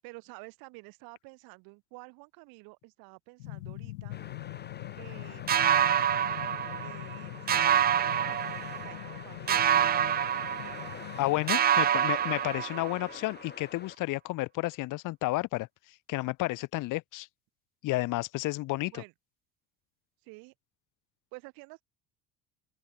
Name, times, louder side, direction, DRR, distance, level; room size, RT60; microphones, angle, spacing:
voice 1, 0.0-4.2 5.0-6.1 6.8-8.5 8.8-10.0 11.4-12.0 18.9-19.1 20.2-20.5 21.3-21.8, right 29 dB, 75° right, 4.4 m, -50 dB
sound 1, 3.4-11.5, left 20 dB, 90° left, 2.9 m, -43 dB
sound 2, 4.1-14.0, left 7 dB, 30° left, 1.3 m, -47 dB
sound 3, 5.5-7.2 7.5-9.1 9.5-11.2 11.5-13.2, right 10 dB, 25° right, 0.4 m, -27 dB
voice 2, 11.2-15.7 16.1-17.3 17.8-19.0, left 19 dB, 60° left, 0.9 m, -31 dB
open air
supercardioid pair, 80°, 36 cm